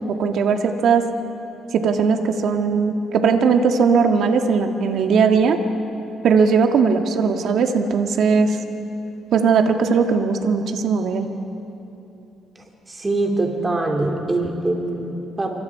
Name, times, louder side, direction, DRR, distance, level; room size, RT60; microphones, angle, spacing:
voice 1, 0.2-1.0 1.7-5.6 6.2-8.6 9.3-11.3, right 5 dB, 65° right, 5 dB, 1.7 m, -18 dB
voice 2, 12.9-15.6, right 2 dB, 20° right, 1 dB, 3.0 m, -23 dB
28.0 x 25.0 x 4.8 m, 2.8 s
cardioid pair, 110°, 0 cm